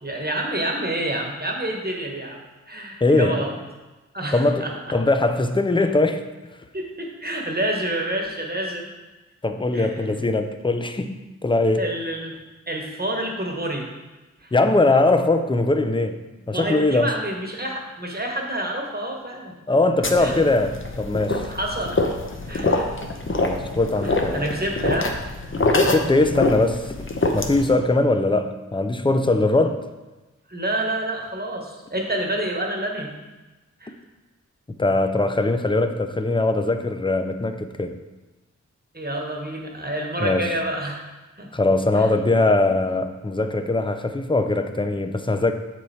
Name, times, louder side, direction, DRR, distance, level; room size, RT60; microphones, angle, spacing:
voice 1, 0.0-2.4 2.7-3.5 4.1-4.7 6.7-8.9 9.7-10.3 11.8-12.4 12.7-13.9 14.4-14.5 16.5-19.5 20.2-20.4 21.5-22.0 22.5-22.9 23.3-23.5 24.0-25.1 30.5-33.1 33.8-33.9 38.9-41.0 41.4-41.5 42.0-42.1, right 1 dB, 30° right, 0 dB, 1.4 m, -28 dB
voice 2, 3.0-3.4 4.3-6.2 9.4-11.8 14.5-16.2 16.5-17.1 19.7-21.5 23.4-24.4 25.8-26.9 27.3-29.8 34.7-38.0 40.2-40.5 41.5-45.5, left 2 dB, 15° left, 8 dB, 0.6 m, -21 dB
sound 1, 20.0-27.7, left 2 dB, 40° left, 0.8 m, -25 dB
7.1 x 4.5 x 4.2 m, 1.1 s
cardioid pair, 40°, 30 cm